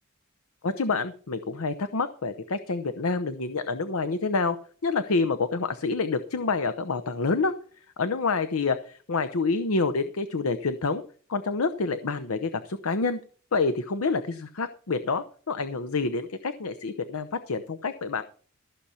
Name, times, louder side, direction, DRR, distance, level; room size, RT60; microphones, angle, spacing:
voice 1, 0.6-4.6 4.8-7.5 8.0-11.0 11.3-13.2 13.5-18.2, left 4 dB, 90° left, 10 dB, 0.8 m, -27 dB
14.5 x 6.9 x 5.7 m, 0.43 s
head